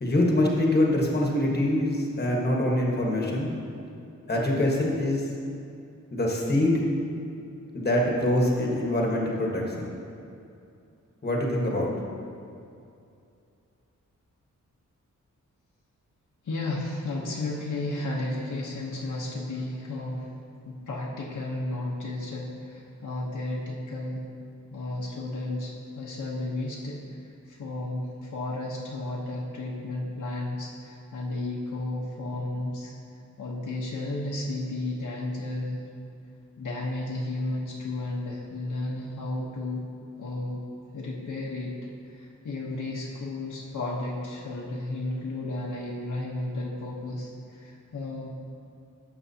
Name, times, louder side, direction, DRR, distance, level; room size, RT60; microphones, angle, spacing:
voice 1, 0.0-3.5 4.3-5.2 6.1-6.8 7.7-9.9 11.2-11.9, left 1 dB, 30° left, -2 dB, 1.3 m, -24 dB
voice 2, 16.4-20.3 20.6-24.3 24.7-32.9 33.4-35.9 36.6-39.9 40.2-40.6 40.9-41.8 42.0-48.3, left 2 dB, 75° left, -4 dB, 1.0 m, -33 dB
12.0 x 7.2 x 2.8 m, 2.6 s
wide cardioid pair, 155°, 31 cm